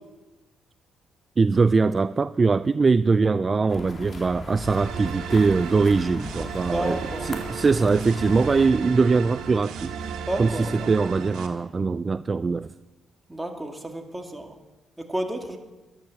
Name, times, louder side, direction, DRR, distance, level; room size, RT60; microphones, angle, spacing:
voice 1, 1.4-9.9 10.4-12.7, right 4 dB, 30° right, 14 dB, 0.4 m, -22 dB
sound 1, 3.7-8.7, left 3 dB, 40° left, 2.6 m, -38 dB
sound 2, 4.6-11.5, right 7 dB, 90° right, 1.8 m, -35 dB
voice 2, 6.7-7.6 10.3-10.9 13.3-14.5 15.1-15.6, right 1 dB, 10° right, 3 dB, 2.0 m, -31 dB
12.5 x 11.0 x 7.0 m, 1.1 s
cardioid pair, 90°, 0 cm